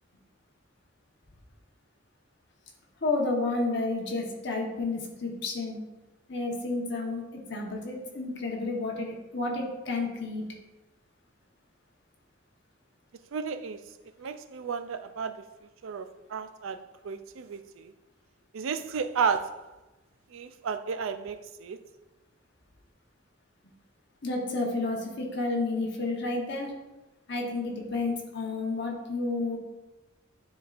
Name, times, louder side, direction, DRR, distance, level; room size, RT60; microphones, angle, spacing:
voice 1, 3.0-5.8 6.3-10.4 24.2-26.7 27.3-29.6, left 3 dB, 60° left, 1.1 m, -31 dB
voice 2, 13.3-13.8 14.2-15.4 15.8-16.8 17.0-17.9 18.5-19.6 20.3-21.8, right 6 dB, 80° right, 0.4 m, -32 dB
10.0 x 3.8 x 2.5 m
head